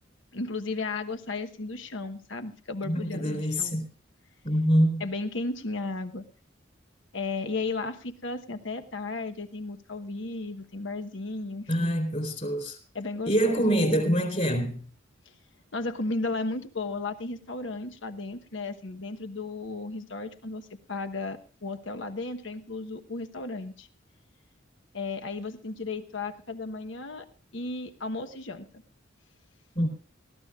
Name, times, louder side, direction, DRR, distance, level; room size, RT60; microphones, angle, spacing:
voice 1, 0.3-3.8 5.0-6.2 7.1-11.9 12.9-14.4 15.7-23.9 24.9-27.2 27.5-28.7, left 3 dB, 75° left, 1.2 m, -34 dB
voice 2, 2.9-3.9 4.4-5.0 11.7-12.8 13.3-14.9 29.8-29.9, equal, 40° left, 3.9 m, -25 dB
19.0 x 14.5 x 2.4 m
head